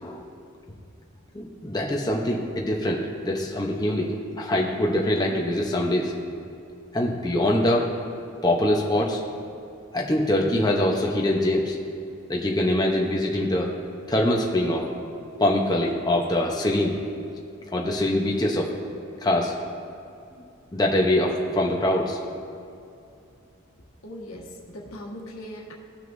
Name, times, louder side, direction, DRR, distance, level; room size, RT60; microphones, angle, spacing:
voice 1, 1.3-6.1 6.9-7.9 8.4-9.2 9.9-11.8 12.3-13.7 14.1-14.9 15.4-17.0 17.7-18.7 19.2-19.5 20.3-20.4 20.7-22.2, left 1 dB, 20° left, -1 dB, 0.8 m, -23 dB
voice 2, 24.0-25.7, equal, 90° left, -2 dB, 1.5 m, -39 dB
17.0 x 6.3 x 2.6 m, 2.6 s
head